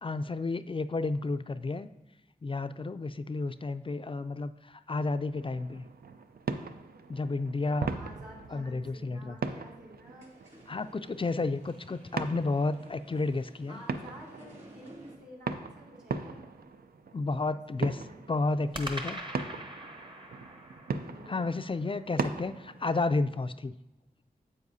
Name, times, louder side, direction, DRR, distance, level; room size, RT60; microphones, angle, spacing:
voice 1, 0.0-1.9 2.4-5.9 7.1-7.9 8.5-9.4 10.7-13.8 17.1-18.0 18.3-19.2 21.3-23.8, left 3 dB, 35° left, 11 dB, 0.3 m, -31 dB
sound 1, 5.3-22.8, right 4 dB, 85° right, 0.4 m, -40 dB
voice 2, 7.6-10.3 13.7-16.4 17.5-18.2 20.8-21.5, equal, 70° right, -5 dB, 2.6 m, -50 dB
sound 2, 10.1-15.2, equal, 45° right, 2.4 m, -55 dB
sound 3, 11.0-12.9 18.7-23.0, right 1 dB, 30° right, 1.0 m, -45 dB
9.6 x 7.4 x 2.7 m, 0.96 s
cardioid pair, 45°, 15 cm